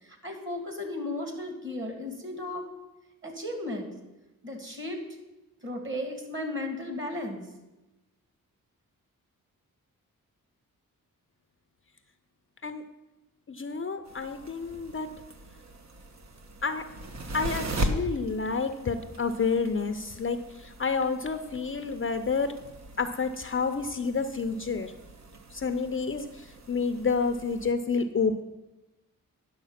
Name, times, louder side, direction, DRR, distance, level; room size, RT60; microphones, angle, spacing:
voice 1, 0.0-2.6 3.2-3.9 4.4-5.0 5.6-7.5, left 1 dB, 35° right, 4 dB, 2.4 m, -35 dB
voice 2, 13.5-15.1 16.6-16.8 17.3-20.4 20.6-22.5 23.0-24.9 25.5-26.3 26.7-28.4, left 4 dB, 35° left, 9 dB, 0.6 m, -29 dB
sound 1, 14.0-27.7, right 1 dB, 50° right, 1.1 m, -39 dB
10.0 x 6.6 x 5.8 m, 1.0 s
cardioid pair, 80°, 35 cm